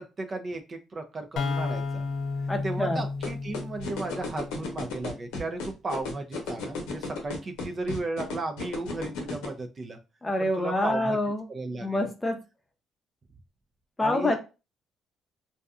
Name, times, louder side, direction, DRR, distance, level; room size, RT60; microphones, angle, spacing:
voice 1, 0.0-2.1 2.6-10.0 10.4-11.2 11.5-12.0 14.0-14.4, right 2 dB, 40° right, 5 dB, 0.4 m, -35 dB
sound 1, 1.4-5.0, left 4 dB, 65° left, 0.3 m, -33 dB
voice 2, 2.5-3.0 10.2-11.5 11.8-12.4 14.0-14.4, left 1 dB, 20° left, 4 dB, 0.6 m, -26 dB
sound 2, 3.2-9.5, left 4 dB, 90° left, 0.8 m, -33 dB
2.6 x 2.2 x 2.4 m, 0.30 s
supercardioid pair, 80°, 0 cm